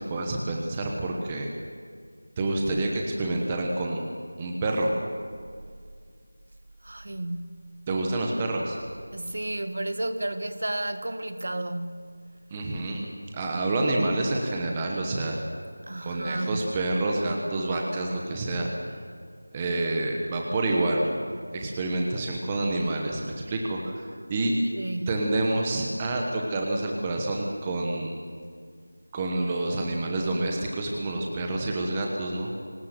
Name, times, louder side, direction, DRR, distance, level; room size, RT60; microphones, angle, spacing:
voice 1, 0.0-1.5 2.4-4.0 4.4-4.9 7.9-8.8 12.5-13.1 13.3-15.4 16.0-18.7 19.5-21.1 21.5-24.5 25.1-28.1 29.1-32.5, right 2 dB, 10° right, 1.1 m, -28 dB
voice 2, 6.8-7.7 9.1-12.2 15.9-16.7 24.7-25.2, right 1 dB, 50° right, 1.6 m, -32 dB
24.0 x 19.0 x 7.8 m
figure-of-eight pair, 180°, 0 cm